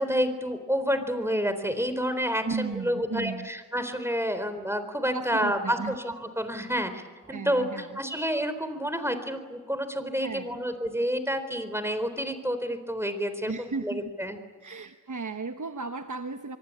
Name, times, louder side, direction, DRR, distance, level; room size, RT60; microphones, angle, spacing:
voice 1, 0.0-7.0 7.3-14.4, equal, 10° right, 10 dB, 3.9 m, -29 dB
voice 2, 2.4-3.5 5.1-6.0 7.3-8.0 10.2-10.6 13.5-14.1 14.6-16.6, right 4 dB, 75° right, 7 dB, 1.1 m, -35 dB
26.0 x 23.5 x 8.6 m, 1.4 s
wide cardioid pair, 55°, 31 cm